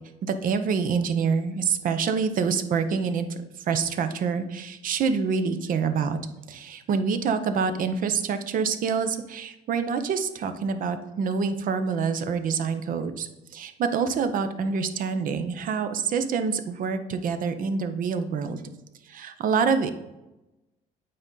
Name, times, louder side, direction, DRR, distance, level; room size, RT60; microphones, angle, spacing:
voice 1, 0.2-3.3 3.7-6.2 6.5-13.3 13.5-18.6 19.1-19.9, right 5 dB, 55° right, 9 dB, 0.7 m, -26 dB
8.7 x 3.9 x 3.8 m, 0.98 s
cardioid pair, 110°, 17 cm